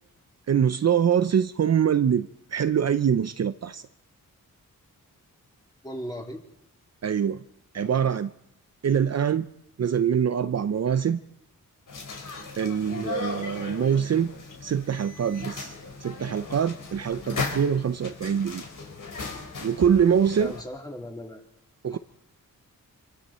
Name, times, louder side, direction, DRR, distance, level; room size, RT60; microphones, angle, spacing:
voice 1, 0.5-3.8 7.0-7.4 7.7-8.3 8.8-9.5 9.8-11.2 12.6-14.3 14.6-15.7 16.0-18.6 19.6-20.5 21.8-22.0, right 8 dB, 50° right, 0.7 m, -24 dB
voice 2, 5.8-6.4 12.9-13.2 20.4-21.4 21.8-22.0, equal, 10° left, 3.4 m, -37 dB
sound 1, 11.9-20.6, left 4 dB, 70° left, 4.5 m, -37 dB
27.5 x 24.0 x 4.4 m
wide cardioid pair, 110°, 33 cm